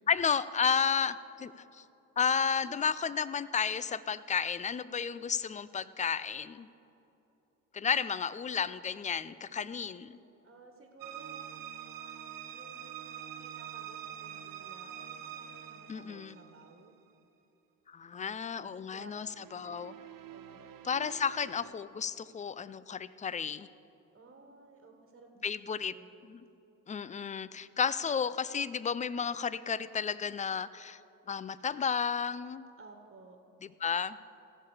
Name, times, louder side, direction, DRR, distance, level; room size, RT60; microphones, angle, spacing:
voice 1, 0.1-1.8 2.2-6.7 7.7-10.2 15.9-16.4 17.9-19.9 20.8-23.7 25.4-25.9 26.3-26.4 26.9-31.0 31.3-32.7 33.6-34.2, left 6 dB, 20° left, 16 dB, 0.3 m, -32 dB
voice 2, 9.3-10.0 10.4-11.4 12.5-16.9 18.1-19.1 19.4-20.0 20.3-20.6 24.1-26.2 32.8-33.4, right 3 dB, 30° right, 3 dB, 1.6 m, -56 dB
sound 1, 11.0-16.9 19.2-21.7, right 9 dB, 55° right, 0.9 m, -46 dB
17.0 x 7.0 x 4.9 m, 3.0 s
hypercardioid pair, 60°, 40 cm